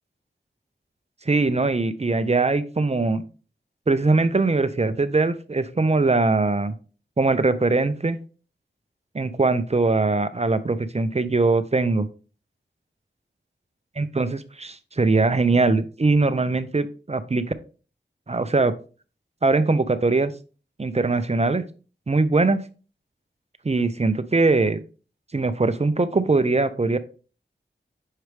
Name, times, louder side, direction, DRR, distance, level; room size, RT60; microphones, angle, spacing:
voice 1, 1.3-3.2 3.9-6.7 7.2-8.2 9.1-12.1 14.0-17.4 18.3-18.7 19.4-20.3 20.8-21.6 22.1-22.6 23.6-24.8 25.3-27.0, right 3 dB, 35° right, 12 dB, 0.6 m, -21 dB
6.6 x 4.6 x 3.3 m, 0.36 s
wide cardioid pair, 60°, 19 cm